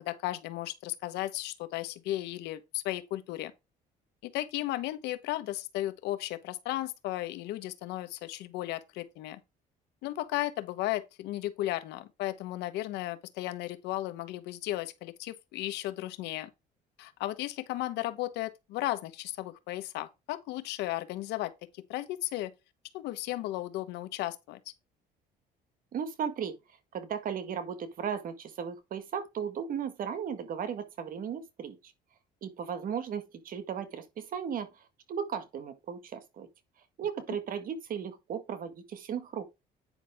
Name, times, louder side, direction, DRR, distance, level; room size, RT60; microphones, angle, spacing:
voice 1, 0.0-3.5 4.2-9.4 10.0-16.5 17.0-21.5 21.9-22.5 22.9-24.6, left 15 dB, 90° left, 1.1 m, -35 dB
voice 2, 25.9-26.5 26.9-31.9 32.4-36.5 37.0-39.4, right 7 dB, 55° right, 1.7 m, -36 dB
9.3 x 5.7 x 3.5 m
cardioid pair, 110°, 17 cm